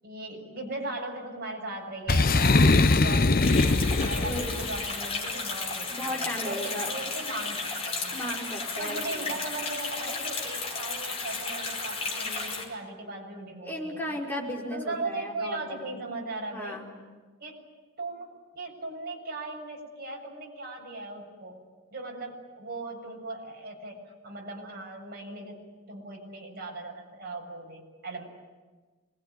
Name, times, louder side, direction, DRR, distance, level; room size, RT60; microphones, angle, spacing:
voice 1, 0.0-8.2 8.8-14.2 14.7-16.8 17.4-17.6 18.0-21.6 21.9-25.6 25.9-28.2, right 2 dB, 50° right, 0 dB, 7.3 m, -38 dB
Boom, 2.1-4.8, left 3 dB, 45° left, 0.8 m, -22 dB
sound 1, 3.4-12.6, left 3 dB, 30° left, 5.2 m, -34 dB
voice 2, 5.9-6.9 8.1-9.3 13.6-15.9 16.5-16.9, equal, 10° left, -3 dB, 5.3 m, -35 dB
26.0 x 21.5 x 10.0 m, 1.3 s
head